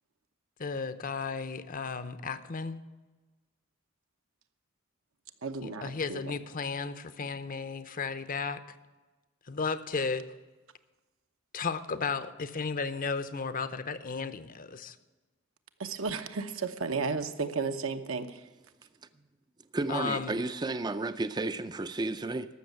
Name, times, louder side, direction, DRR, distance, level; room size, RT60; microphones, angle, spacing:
voice 1, 0.6-2.8 5.6-8.6 9.5-10.3 11.5-15.0 19.9-20.4, left 4 dB, 40° left, 13 dB, 0.7 m, -34 dB
voice 2, 5.4-6.3 15.8-18.4, right 4 dB, 75° right, 8 dB, 0.9 m, -33 dB
voice 3, 19.7-22.6, right 2 dB, 20° right, 12 dB, 0.4 m, -32 dB
14.0 x 6.3 x 9.2 m, 1.2 s
head